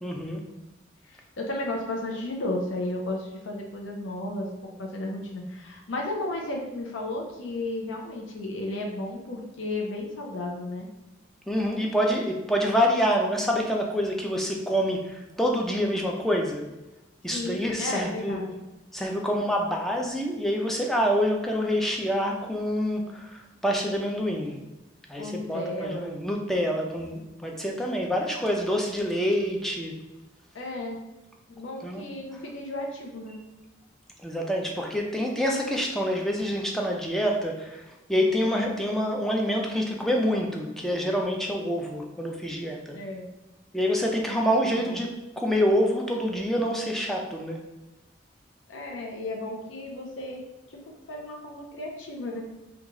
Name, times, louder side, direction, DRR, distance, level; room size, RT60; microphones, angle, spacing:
voice 1, 0.0-0.4 11.5-16.6 17.2-18.4 18.9-24.6 25.1-29.9 31.8-32.0 34.2-43.0 43.7-47.6, equal, ahead, 0 dB, 0.3 m, -27 dB
voice 2, 1.1-4.5 4.8-10.9 17.3-18.6 25.1-26.3 26.7-26.8 30.5-31.0 31.5-33.4 42.9-43.3 44.8-44.9 48.7-52.5, left 2 dB, 85° left, 0 dB, 0.5 m, -34 dB
3.0 x 2.3 x 3.6 m, 1.0 s
head